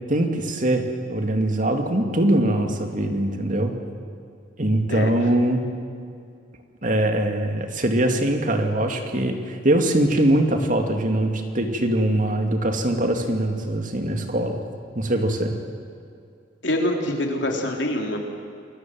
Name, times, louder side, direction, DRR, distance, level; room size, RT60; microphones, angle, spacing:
voice 1, 0.1-3.7 4.6-5.6 6.8-14.6 15.0-15.5, right 1 dB, 45° right, 5 dB, 2.5 m, -22 dB
voice 2, 16.6-18.2, left 1 dB, 75° left, 2 dB, 3.7 m, -25 dB
28.0 x 21.5 x 7.7 m, 2.4 s
head